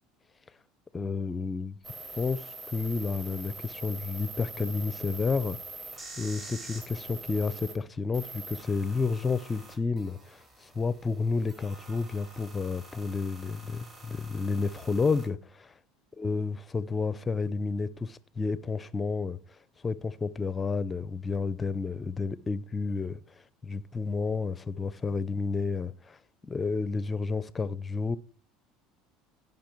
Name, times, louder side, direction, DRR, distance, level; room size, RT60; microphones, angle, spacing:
voice 1, 0.9-1.8 2.2-5.6 6.2-15.7 16.2-19.4 19.8-23.2 23.6-26.2 26.4-28.2, left 4 dB, 20° left, 0.6 m, -31 dB
sound 1, 1.8-7.7 8.1-15.3, right 2 dB, 25° right, 5.1 m, -45 dB
16.0 x 5.6 x 4.6 m
supercardioid pair, 105°, 0 cm